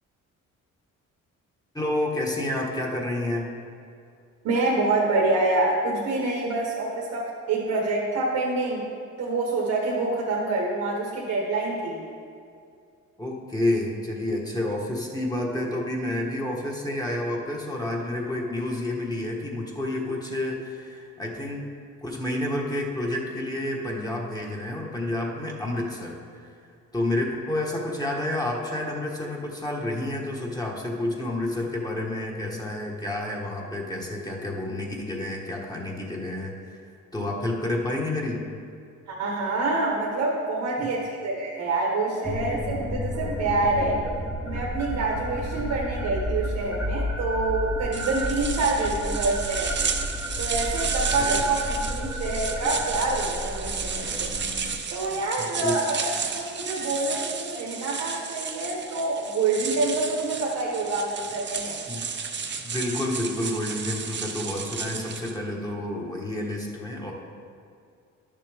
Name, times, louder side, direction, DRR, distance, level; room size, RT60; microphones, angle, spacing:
voice 1, 1.7-3.5 13.2-21.7 22.0-26.5 26.9-36.8 37.1-38.4 40.8-40.9 45.5-45.6 51.2-51.4 55.4-55.7 61.9-62.1 62.6-67.1, left 1 dB, 10° left, -2 dB, 1.3 m, -29 dB
voice 2, 4.4-8.9 9.2-12.1 39.1-44.0 44.4-49.9 50.4-54.3 54.9-61.8, right 2 dB, 70° right, -3 dB, 1.3 m, -26 dB
sound 1, 42.2-54.8, equal, 5° right, 1.0 m, -31 dB
sound 2, 47.9-65.4, right 6 dB, 40° right, 0.8 m, -33 dB
11.0 x 6.7 x 3.5 m, 2.4 s
cardioid pair, 90°, 30 cm